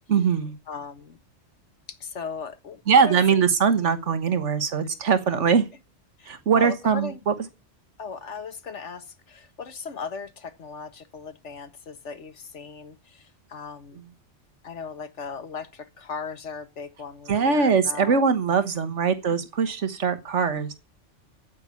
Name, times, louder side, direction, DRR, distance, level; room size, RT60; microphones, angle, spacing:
voice 1, 0.1-0.5 2.9-5.7 6.3-7.3 14.0-14.1 17.3-20.7, right 6 dB, 75° right, 1.6 m, -22 dB
voice 2, 0.7-1.2 1.9-3.4 6.2-7.2 8.0-14.0 14.6-18.2, left 5 dB, 70° left, 1.7 m, -37 dB
9.1 x 8.8 x 8.2 m
omnidirectional pair, 1.2 m